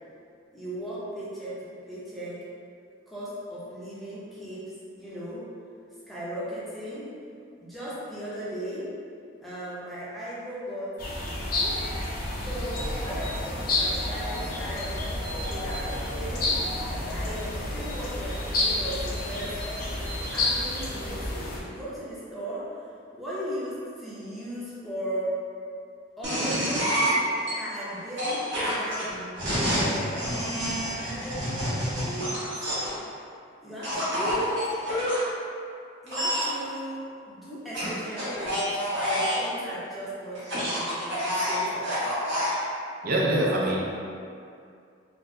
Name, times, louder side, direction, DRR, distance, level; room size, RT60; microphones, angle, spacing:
voice 1, 0.5-2.4 3.1-4.7 5.0-5.5 6.1-7.1 7.6-8.9 9.4-11.0 11.2-11.8 12.4-15.0 15.4-16.6 17.1-19.6 19.8-20.0 20.3-22.8 23.1-25.3 26.2-30.4 30.8-32.5 33.6-34.7 36.0-38.7 39.0-41.9 43.6-43.7, equal, ahead, -11 dB, 0.5 m, -37 dB
sound 1, 11.0-21.6, left 2 dB, 45° left, 0.5 m, -30 dB
sound 2, 26.2-27.5 28.2-33.0 33.8-35.2 36.1-36.5 37.7-39.5 40.4-42.5, equal, 65° right, 1.1 m, -28 dB
voice 2, 43.0-43.8, right 1 dB, 45° right, -2 dB, 0.4 m, -24 dB
4.2 x 2.0 x 2.6 m, 2.4 s
head